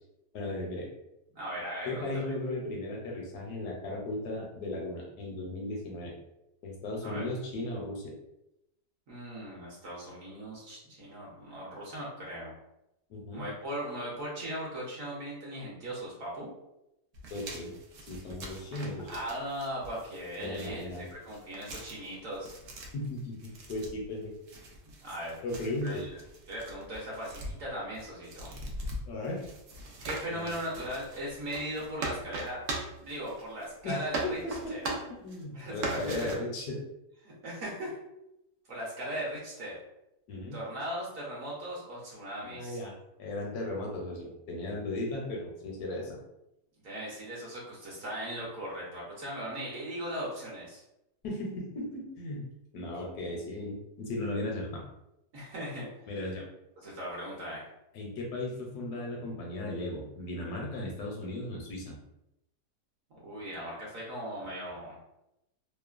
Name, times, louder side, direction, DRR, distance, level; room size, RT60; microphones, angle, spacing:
voice 1, 0.3-0.9 1.8-6.1 6.6-8.1 13.1-13.5 17.3-17.7 18.0-19.2 20.4-21.1 22.9-24.3 25.4-26.1 29.1-29.4 30.3-30.5 33.8-36.8 40.3-40.6 42.4-42.9 43.2-46.2 51.2-52.5 52.7-54.8 56.1-56.5 57.9-62.0, left 1 dB, 75° left, -1 dB, 1.1 m, -36 dB
voice 2, 1.3-2.3 7.0-7.3 9.1-12.5 13.3-16.5 19.1-22.6 25.0-25.4 25.8-26.2 26.5-28.5 30.0-32.6 33.0-34.4 34.7-34.9 35.5-36.4 37.2-38.0 38.7-39.8 40.5-42.8 46.8-50.8 55.3-56.1 56.8-57.6 63.2-65.0, equal, 60° right, -5 dB, 1.0 m, -38 dB
sound 1, 17.1-33.8 34.1-35.4 35.8-36.3, right 2 dB, 85° right, 0.6 m, -41 dB
3.0 x 2.0 x 2.3 m, 0.87 s
omnidirectional pair, 1.8 m